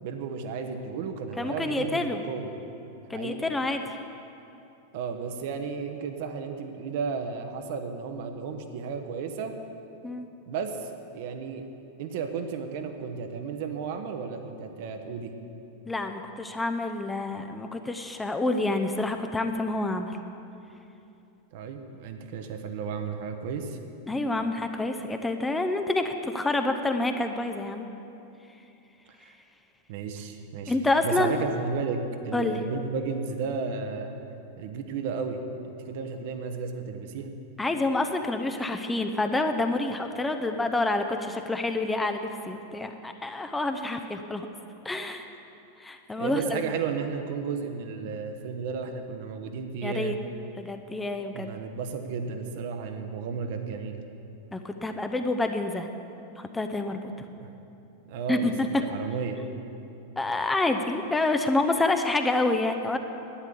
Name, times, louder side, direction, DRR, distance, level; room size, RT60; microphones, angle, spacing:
voice 1, 0.0-2.5 3.1-3.4 4.9-9.5 10.5-10.9 11.1-11.7 12.0-15.3 21.5-23.8 29.9-30.7 31.0-34.1 34.6-35.4 35.8-37.3 46.2-50.2 51.3-54.0 57.4-57.5 58.1-59.4, right 5 dB, 50° right, 6 dB, 1.0 m, -33 dB
voice 2, 1.4-2.2 3.1-3.8 10.0-10.3 15.9-20.2 24.1-27.9 30.7-31.4 32.3-32.6 37.6-44.5 44.8-45.3 45.8-46.6 49.8-50.2 50.6-51.5 54.5-55.9 56.4-57.1 58.3-58.7 60.2-63.0, left 2 dB, 10° left, 6 dB, 0.7 m, -28 dB
11.5 x 9.7 x 7.1 m, 2.8 s
figure-of-eight pair, 90°, 0 cm